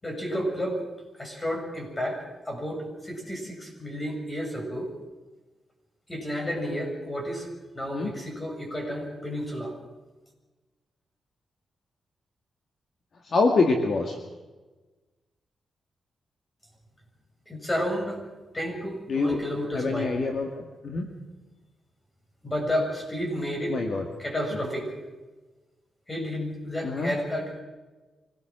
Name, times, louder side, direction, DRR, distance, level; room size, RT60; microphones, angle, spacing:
voice 1, 0.0-0.8 1.1-4.9 6.1-7.5 7.7-9.7 17.5-18.2 18.5-20.2 22.4-23.8 24.2-24.9 26.1-27.6, equal, 20° left, 1 dB, 7.4 m, -31 dB
voice 2, 13.3-14.2 19.1-19.4 19.7-21.0 23.7-24.0 26.8-27.1, left 3 dB, 50° left, 3 dB, 2.4 m, -25 dB
25.0 x 18.5 x 6.3 m, 1.2 s
wide cardioid pair, 130°, 0 cm